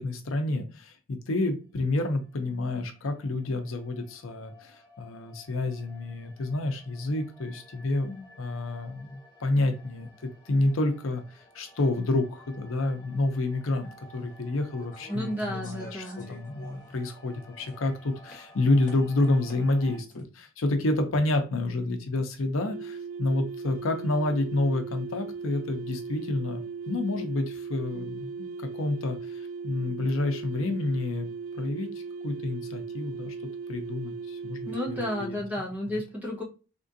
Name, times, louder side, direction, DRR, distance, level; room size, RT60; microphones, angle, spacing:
voice 1, 0.0-26.6 26.9-31.3 31.5-31.9 32.2-33.3 33.7-35.4, left 2 dB, 70° left, 6 dB, 0.6 m, -29 dB
sound 1, 2.1-20.0, equal, 20° left, 1.3 m, -55 dB
sound 2, 13.8-13.9 14.7-17.0 17.3-17.9 18.2-18.4 18.8-19.8 20.1-20.2, left 1 dB, 40° left, 1.1 m, -49 dB
voice 2, 15.1-16.3 34.7-36.4, left 1 dB, 10° right, -3 dB, 0.9 m, -32 dB
sound 3, 22.6-35.4, right 5 dB, 80° right, 0.3 m, -38 dB
3.6 x 2.5 x 2.5 m, 0.33 s
head